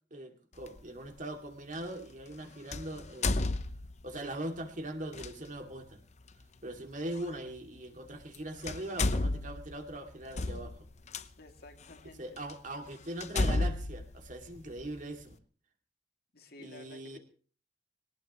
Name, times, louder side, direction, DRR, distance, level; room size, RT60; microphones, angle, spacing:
voice 1, 0.1-3.5 4.0-6.0 6.6-10.9 12.2-15.4 16.6-17.2, right 1 dB, 45° right, 5 dB, 2.4 m, -41 dB
Extra. Puerta, 0.6-0.8 2.7-4.2 5.1-5.3 7.2-7.3 8.2-8.4 8.6-11.2 11.9-12.0 12.5-12.6 13.2-15.0, left 2 dB, 40° left, 0.7 m, -32 dB
voice 2, 11.4-12.2 16.3-17.2, left 2 dB, 60° left, 4 dB, 2.4 m, -52 dB
21.5 x 18.5 x 3.0 m, 0.42 s
head